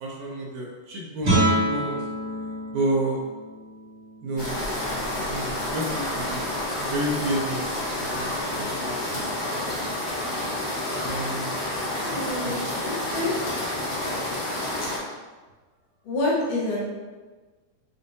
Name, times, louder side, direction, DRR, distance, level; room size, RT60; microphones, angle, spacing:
voice 1, 0.0-2.0 2.7-3.2 4.2-5.0 5.3-6.4 6.9-7.8 8.2-9.2 11.0-11.5 12.4-12.5, right 1 dB, 80° right, -2 dB, 1.9 m, -30 dB
Guitar, 1.2-6.8, right 1 dB, 45° right, 1.9 m, -29 dB
sound 1, 4.4-15.0, left 1 dB, 50° left, 0.7 m, -29 dB
voice 2, 12.0-13.3 16.1-16.8, left 2 dB, 80° left, -5 dB, 2.5 m, -27 dB
6.6 x 2.6 x 2.6 m, 1.3 s
omnidirectional pair, 3.7 m